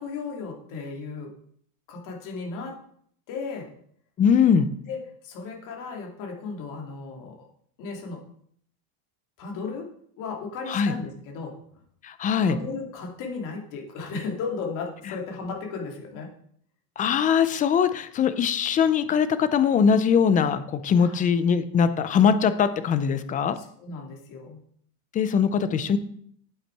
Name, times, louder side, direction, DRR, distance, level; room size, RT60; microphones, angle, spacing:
voice 1, 0.0-1.3 1.9-2.8 3.3-3.7 4.9-7.5 7.8-8.2 9.4-9.9 10.2-11.6 12.4-16.3 21.0-21.2 23.6-24.6, left 4 dB, 45° left, 1 dB, 2.6 m, -35 dB
voice 2, 4.2-4.7 10.7-10.9 12.0-12.6 17.0-23.6 25.1-26.0, left 7 dB, 20° left, 12 dB, 0.4 m, -21 dB
9.0 x 8.2 x 4.6 m, 0.63 s
cardioid pair, 165°, 42 cm